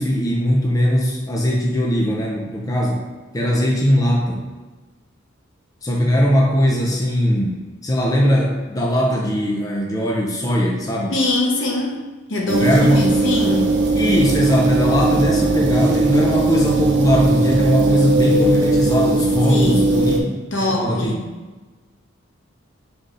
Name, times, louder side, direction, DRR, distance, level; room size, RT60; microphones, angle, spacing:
voice 1, 0.0-3.0 3.3-4.4 5.8-7.6 7.8-11.1 12.6-13.0 14.0-20.3 20.7-21.1, equal, 15° left, -2 dB, 0.5 m, -19 dB
voice 2, 11.1-12.0 12.3-13.8 19.5-20.1 20.5-21.2, left 2 dB, 65° left, -1 dB, 0.9 m, -22 dB
sound 1, 12.5-20.2, right 2 dB, 60° right, 0.6 m, -19 dB
4.0 x 3.4 x 3.8 m, 1.2 s
head